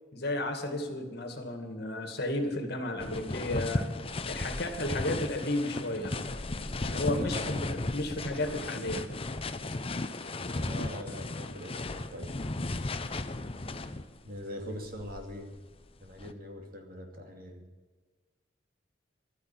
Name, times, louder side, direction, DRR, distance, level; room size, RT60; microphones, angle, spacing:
voice 1, 0.1-3.9 4.3-6.2 6.8-9.0, left 1 dB, 55° left, 5 dB, 2.3 m, -33 dB
sound 1, 3.0-14.3 14.8-16.3, left 2 dB, 30° left, 0.8 m, -35 dB
voice 2, 7.2-7.6 10.7-12.4 14.2-15.5 16.0-17.6, equal, 50° right, 3 dB, 2.5 m, -42 dB
12.5 x 10.0 x 9.0 m, 1.3 s
head